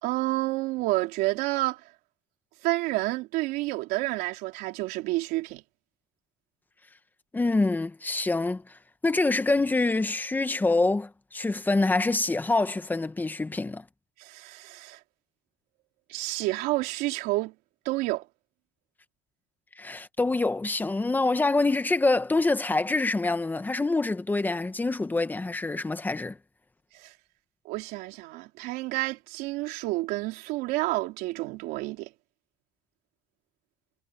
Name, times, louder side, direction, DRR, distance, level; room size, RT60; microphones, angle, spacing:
voice 1, 0.0-1.8 2.6-5.6 14.2-15.0 16.1-17.5 17.9-18.3 26.9-27.1 27.7-32.1, right 20 dB, 75° right, 3.6 m, -29 dB
voice 2, 7.3-13.8 19.8-26.4, left 3 dB, 10° left, 1.3 m, -26 dB
cardioid pair, 135°, 16 cm